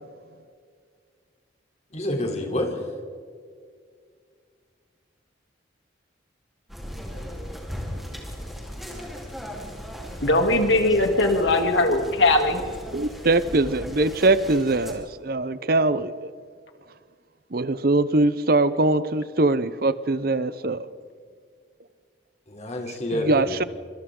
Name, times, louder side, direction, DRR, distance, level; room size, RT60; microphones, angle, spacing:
voice 1, 1.9-2.8 22.5-23.6, left 1 dB, 35° left, 2 dB, 3.3 m, -28 dB
sound 1, 6.7-14.9, equal, ahead, 3.6 m, -37 dB
voice 2, 10.2-12.6, left 2 dB, 80° left, 4 dB, 2.8 m, -20 dB
voice 3, 12.9-16.3 17.5-20.9 23.1-23.6, right 2 dB, 50° right, 14 dB, 0.8 m, -22 dB
26.0 x 26.0 x 3.8 m, 2.1 s
head